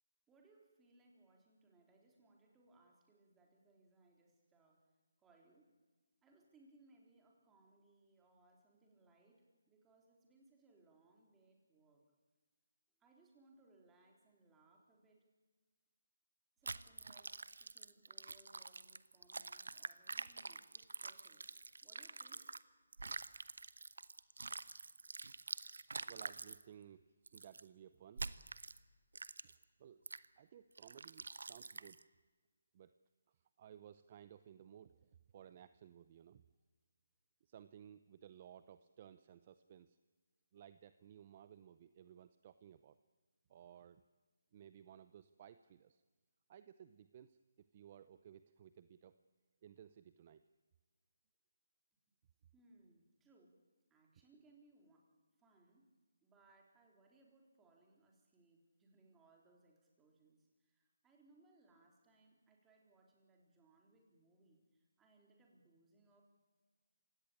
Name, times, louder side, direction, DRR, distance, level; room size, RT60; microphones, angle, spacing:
voice 1, 0.3-4.8 5.2-5.7 6.2-12.0 13.0-15.2 16.6-22.5 52.5-53.5 53.9-55.1 55.4-55.9 56.2-66.2, right 2 dB, 10° right, 0 dB, 3.8 m, -69 dB
sound 1, 16.7-22.6 22.9-26.6 27.3-27.6 28.2-28.8 29.2-29.6 30.1-30.3 30.8-32.0, right 3 dB, 80° right, 0.9 m, -47 dB
voice 2, 26.1-27.0 27.3-28.3 29.4-30.0 30.4-32.0 32.7-32.9 33.3-36.4 37.4-40.0 40.5-43.0 43.5-44.0 44.5-46.0 46.5-47.4 47.7-49.1 49.6-50.4, right 9 dB, 35° right, 13 dB, 0.6 m, -58 dB
27.5 x 17.5 x 8.7 m, 1.3 s
hypercardioid pair, 160°, 0 cm